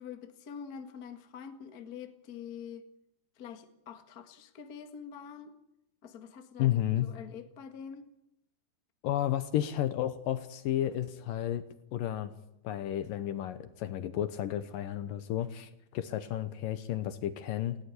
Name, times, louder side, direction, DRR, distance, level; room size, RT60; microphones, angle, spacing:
voice 1, 0.0-2.9 3.4-5.6 6.0-8.1, left 7 dB, 45° left, 1.2 m, -45 dB
voice 2, 6.6-7.1 9.0-12.3 12.6-17.8, left 12 dB, 70° left, 2.4 m, -32 dB
19.0 x 16.5 x 8.5 m
omnidirectional pair, 4.5 m